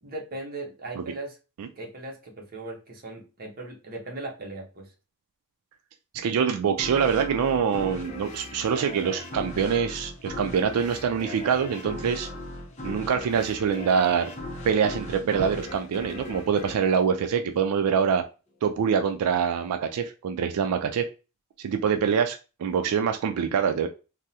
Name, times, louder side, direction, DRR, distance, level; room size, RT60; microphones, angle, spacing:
voice 1, 0.0-1.4 1.8-4.9, right 2 dB, 45° right, 0 dB, 0.8 m, -38 dB
voice 2, 6.1-12.3 12.8-14.3 14.6-18.2 18.6-21.1 21.6-23.9, right 7 dB, 90° right, 7 dB, 0.3 m, -25 dB
sound 1, 6.8-18.0, left 2 dB, 30° left, 0.6 m, -38 dB
3.5 x 2.0 x 2.7 m, 0.32 s
head